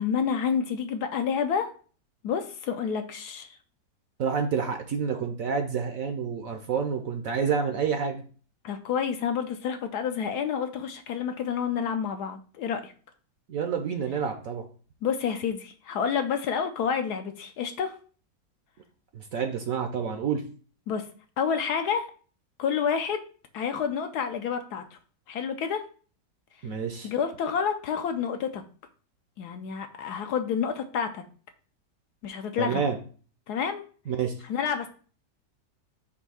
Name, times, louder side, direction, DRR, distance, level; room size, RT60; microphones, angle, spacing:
voice 1, 0.0-1.7 2.2-3.6 8.6-12.9 15.0-17.9 20.9-21.1 21.4-22.1 22.6-23.2 23.5-25.0 25.3-25.8 27.0-28.6 29.4-31.2 32.2-32.9 33.5-33.8 34.4-34.9, left 7 dB, 70° left, 7 dB, 1.1 m, -29 dB
voice 2, 4.2-8.2 13.5-14.7 19.1-20.4 26.6-27.1 32.6-33.0 34.1-34.3, right 6 dB, 60° right, 6 dB, 0.9 m, -28 dB
6.7 x 2.7 x 5.5 m, 0.41 s
omnidirectional pair, 1.9 m